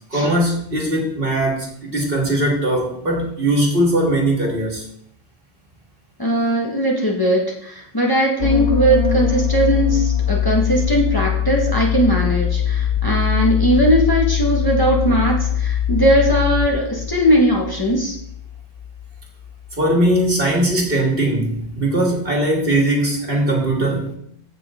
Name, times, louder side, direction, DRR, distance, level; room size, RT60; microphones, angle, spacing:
voice 1, 0.1-4.9 19.7-24.2, right 1 dB, 60° right, -1 dB, 2.4 m, -20 dB
voice 2, 6.2-18.2, right 1 dB, 20° left, -3 dB, 1.8 m, -19 dB
sound 1, 8.4-19.8 20.1-20.4, left 10 dB, 65° left, 0.9 m, -22 dB
15.0 x 6.1 x 3.8 m, 0.68 s
omnidirectional pair, 1.1 m